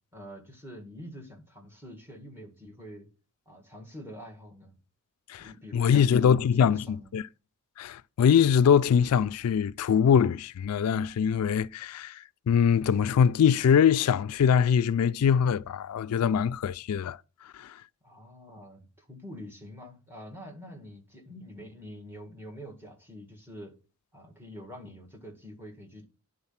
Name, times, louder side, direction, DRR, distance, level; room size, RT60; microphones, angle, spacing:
voice 1, 0.1-3.1 3.5-4.8 5.4-7.1 18.0-23.8 24.1-26.0, equal, 10° right, 1.9 m, -45 dB
voice 2, 5.7-6.8 7.1-7.2 7.8-17.2 17.5-17.8, left 7 dB, 90° left, 0.3 m, -23 dB
10.5 x 3.9 x 5.7 m
head